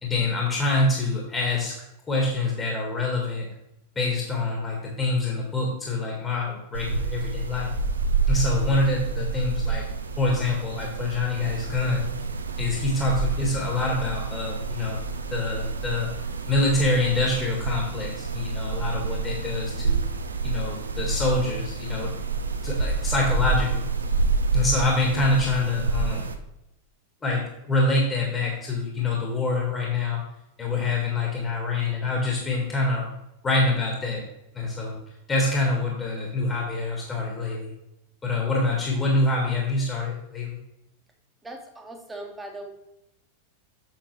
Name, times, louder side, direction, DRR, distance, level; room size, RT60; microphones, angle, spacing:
voice 1, 0.0-1.8 2.1-3.5 3.9-7.7 8.3-9.8 10.2-12.1 12.6-15.0 15.3-16.1 16.5-20.0 20.4-22.1 22.6-23.9 24.5-26.3 27.2-30.2 30.6-33.1 33.4-34.2 34.5-35.0 35.3-37.7 38.2-40.6, left 2 dB, 20° left, -2 dB, 1.7 m, -25 dB
sound 1, 6.7-26.4, right 4 dB, 75° right, 0.6 m, -28 dB
voice 2, 41.4-42.7, right 1 dB, 10° right, 3 dB, 1.2 m, -39 dB
7.2 x 6.6 x 3.2 m, 0.88 s
figure-of-eight pair, 90°, 0 cm